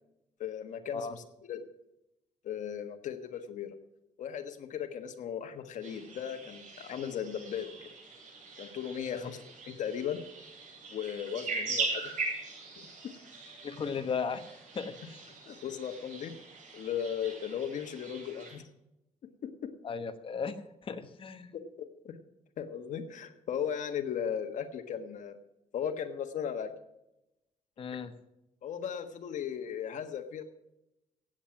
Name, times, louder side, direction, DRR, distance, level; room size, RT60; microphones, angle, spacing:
voice 1, 0.4-1.6 2.4-3.7 4.2-7.9 8.6-10.2 10.9-12.1 13.0-13.1 15.5-16.3 16.7-18.6 19.4-19.7 21.5-22.2 22.6-25.4 25.7-26.7 27.9-28.0 28.6-30.4, left 8 dB, 75° left, 5 dB, 1.5 m, -37 dB
sound 1, 5.8-18.5, right 3 dB, 90° right, 6.8 m, -41 dB
voice 2, 13.6-14.4 14.7-15.2 19.8-21.5 27.8-28.1, left 5 dB, 45° left, 8 dB, 1.1 m, -36 dB
15.5 x 8.9 x 6.0 m, 0.88 s
cardioid pair, 135°, 13 cm